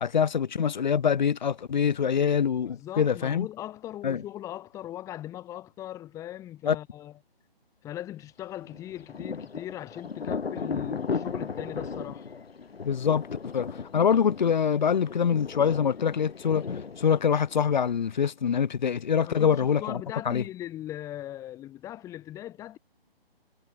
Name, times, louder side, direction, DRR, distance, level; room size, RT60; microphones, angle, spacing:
voice 1, 0.0-3.5 4.0-4.2 6.6-6.8 12.8-13.3 13.5-16.6 17.0-20.4, left 7 dB, 50° left, 1.1 m, -25 dB
voice 2, 2.6-7.2 7.8-12.3 19.2-22.8, left 13 dB, 10° left, 3.4 m, -39 dB
Thunder, 8.6-18.1, left 5 dB, 80° left, 1.8 m, -36 dB
hypercardioid pair, 160°, 30 cm